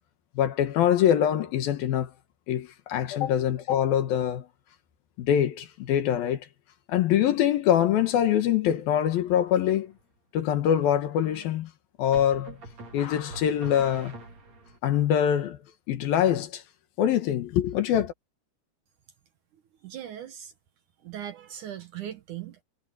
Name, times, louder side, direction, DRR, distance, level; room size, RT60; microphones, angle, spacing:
voice 1, 0.4-2.1 2.5-4.5 5.2-6.5 6.9-9.9 10.3-11.7 12.0-12.6 12.9-14.2 14.8-15.6 15.9-16.6 17.0-18.1, left 10 dB, 70° left, 3.0 m, -24 dB
sound 1, 9.5-10.0 12.1-14.8, right 2 dB, 45° right, 4.9 m, -44 dB
voice 2, 19.8-20.5 21.0-22.6, right 10 dB, 65° right, 2.3 m, -39 dB
omnidirectional pair, 4.6 m